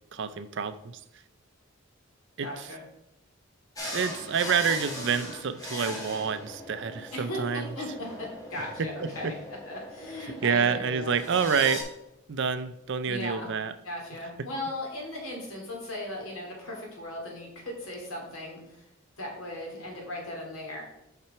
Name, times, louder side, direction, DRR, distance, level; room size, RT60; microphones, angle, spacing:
voice 1, 0.1-1.0 2.4-2.7 3.8-7.7 8.8-9.3 10.4-11.9 12.3-13.7 14.4-14.5, right 6 dB, 60° right, 0.5 m, -28 dB
voice 2, 2.4-2.8 7.1-7.9 8.2-9.3 9.7-11.1 13.0-13.5 13.8-18.8 19.2-20.8, left 1 dB, 85° left, 2.6 m, -37 dB
sound 1, 3.8-11.8, left 1 dB, 15° left, 1.5 m, -40 dB
5.9 x 5.8 x 4.4 m
head